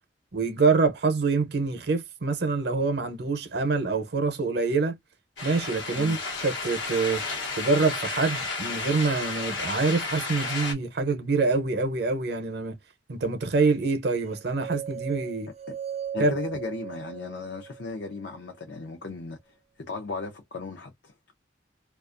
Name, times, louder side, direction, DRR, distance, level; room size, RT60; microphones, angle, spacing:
voice 1, 0.3-5.0 5.4-7.2 7.6-12.8 13.1-15.5 16.2-16.3, right 3 dB, 60° right, 0.7 m, -25 dB
sound 1, 5.4-10.7, left 3 dB, 80° left, 1.0 m, -32 dB
sound 2, 14.3-18.4, right 9 dB, 35° right, 0.3 m, -38 dB
voice 2, 16.1-19.4 19.8-21.1, left 3 dB, 65° left, 0.5 m, -36 dB
2.4 x 2.3 x 2.4 m
head